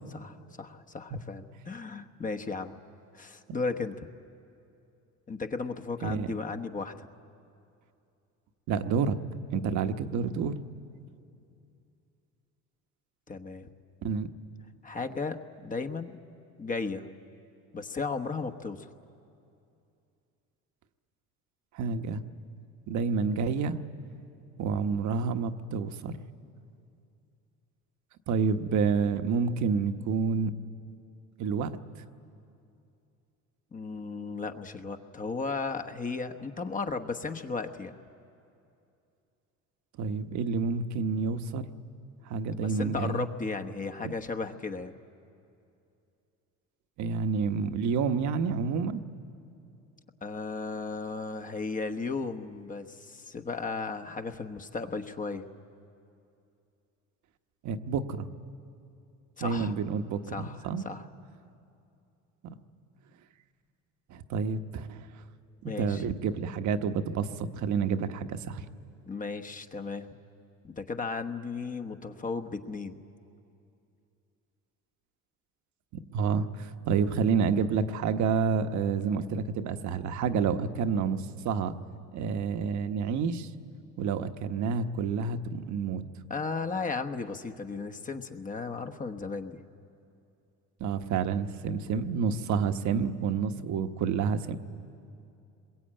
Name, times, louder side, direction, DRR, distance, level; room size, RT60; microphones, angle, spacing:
voice 1, 0.1-2.8 3.1-4.1 5.3-7.1 13.3-13.7 14.8-16.2 16.6-17.1 17.7-18.9 33.7-38.0 42.6-44.9 50.2-55.5 59.4-59.7 60.3-61.0 65.6-66.0 69.1-70.1 70.6-73.0 86.3-89.6, left 4 dB, 25° left, 8 dB, 1.1 m, -35 dB
voice 2, 6.0-6.3 8.7-9.2 9.5-10.6 14.0-14.3 21.7-22.2 22.9-23.8 24.6-26.1 28.3-30.5 31.4-31.8 40.0-41.7 42.2-43.3 47.0-49.0 57.6-58.3 59.4-60.8 62.4-62.5 64.1-65.1 65.6-68.6 76.1-81.7 82.1-83.5 84.0-86.0 90.8-94.6, right 5 dB, 60° right, 8 dB, 1.2 m, -29 dB
26.5 x 21.5 x 8.8 m, 2.6 s
cardioid pair, 110°, 33 cm